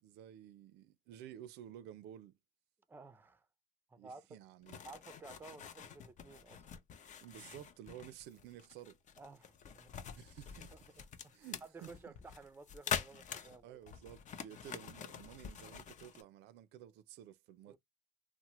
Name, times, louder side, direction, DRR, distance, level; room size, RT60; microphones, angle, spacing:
voice 1, 0.0-2.3 4.0-4.8 7.2-9.0 10.1-10.7 11.3-12.1 13.3-17.8, right 11 dB, 85° right, 0.4 m, -53 dB
voice 2, 2.9-3.5 3.9-4.3 4.8-6.7 9.2-9.9 10.7-14.0 17.7-17.8, right 4 dB, 10° right, 0.4 m, -55 dB
sound 1, 4.7-16.2, left 7 dB, 45° left, 0.5 m, -46 dB
2.9 x 2.0 x 2.9 m
cardioid pair, 110°, 17 cm